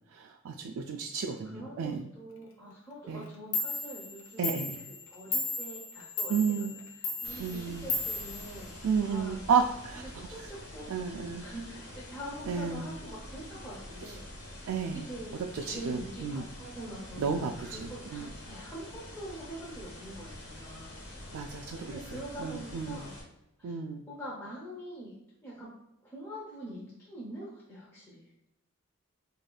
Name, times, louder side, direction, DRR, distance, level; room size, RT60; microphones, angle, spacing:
voice 1, 0.1-2.1 3.1-3.2 4.4-4.8 6.3-6.7 7.4-7.9 8.8-10.0 10.9-11.4 12.5-12.9 14.7-15.0 15.5-16.5 17.2-18.3 21.3-23.0 23.6-24.0, right 6 dB, 70° right, 2 dB, 0.3 m, -32 dB
voice 2, 1.3-4.6 4.8-6.7 7.0-9.4 10.0-14.3 14.9-21.1 21.8-23.2 23.6-23.7 24.1-25.8 26.0-28.2, right 1 dB, 10° left, -7 dB, 0.7 m, -44 dB
Clock, 3.2-3.3 3.5-9.2, left 3 dB, 70° left, 0.5 m, -36 dB
sound 1, 7.2-23.2, left 1 dB, 85° left, 1.3 m, -46 dB
4.7 x 2.6 x 2.3 m, 0.89 s
head